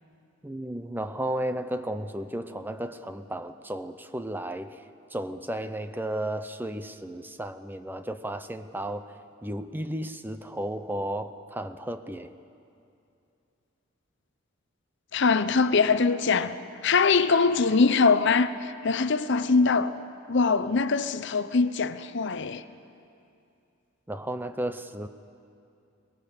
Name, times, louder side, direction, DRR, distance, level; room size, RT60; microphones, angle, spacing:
voice 1, 0.4-4.8 5.1-12.4 24.1-25.1, right 1 dB, 10° right, 0.6 m, -34 dB
voice 2, 15.1-16.6 16.8-19.9 20.3-22.6, left 4 dB, 60° left, 0.7 m, -23 dB
23.0 x 20.0 x 6.7 m
head